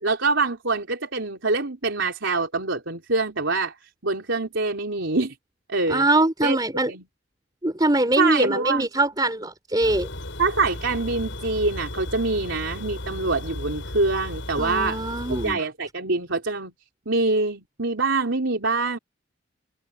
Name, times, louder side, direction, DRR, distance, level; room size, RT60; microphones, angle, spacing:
voice 1, 0.0-3.7 4.0-5.4 5.7-6.1 6.4-6.6 6.9-7.0 8.2-8.9 10.4-15.0 15.4-16.7 17.1-19.0, right 3 dB, 80° right, 3.6 m, -25 dB
voice 2, 5.9-6.9 7.6-10.1 14.6-15.6, right 2 dB, 20° right, 3.9 m, -23 dB
sound 1, 9.8-15.6, left 1 dB, 80° left, 7.6 m, -35 dB
head